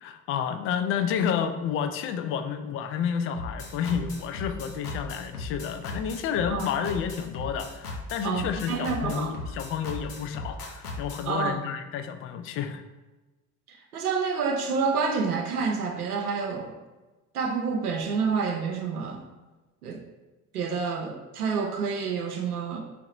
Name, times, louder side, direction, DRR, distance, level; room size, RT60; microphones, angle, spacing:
voice 1, 0.0-12.8, left 8 dB, 30° left, 8 dB, 0.4 m, -30 dB
sound 1, 3.3-11.3, left 2 dB, 85° left, 0.7 m, -37 dB
voice 2, 8.2-9.3 11.2-11.6 13.7-16.8 17.3-19.3 19.8-20.0 20.5-22.8, right 5 dB, 80° right, 3 dB, 0.6 m, -28 dB
4.7 x 3.5 x 2.9 m, 1.2 s
figure-of-eight pair, 60°, 44 cm